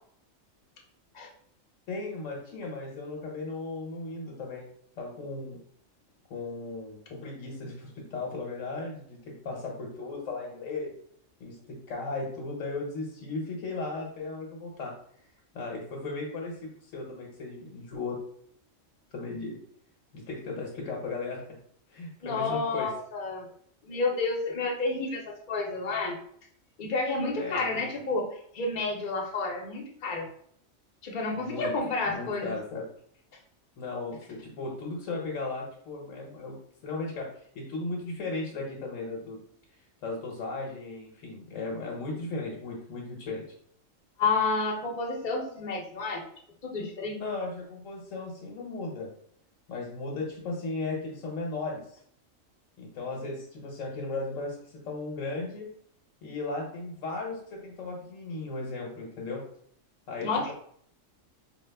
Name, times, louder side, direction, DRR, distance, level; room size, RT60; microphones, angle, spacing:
voice 1, 1.9-4.7 5.0-5.6 6.3-10.9 11.4-14.9 15.5-18.2 19.1-19.6 20.1-21.4 21.9-22.9 27.2-27.8 31.3-31.7 32.1-32.8 33.8-36.5 36.8-37.3 37.5-39.4 40.0-43.4 47.2-49.1 49.7-51.8 52.8-55.7 56.2-59.4 60.1-60.5, left 3 dB, 75° left, -1 dB, 1.1 m, -36 dB
voice 2, 22.2-23.5 23.8-26.2 26.8-28.3 28.5-30.2 31.0-32.5 44.2-46.2 46.6-47.2 60.2-60.5, left 3 dB, 45° left, 0 dB, 0.8 m, -30 dB
4.6 x 2.2 x 3.3 m, 0.63 s
omnidirectional pair, 1.4 m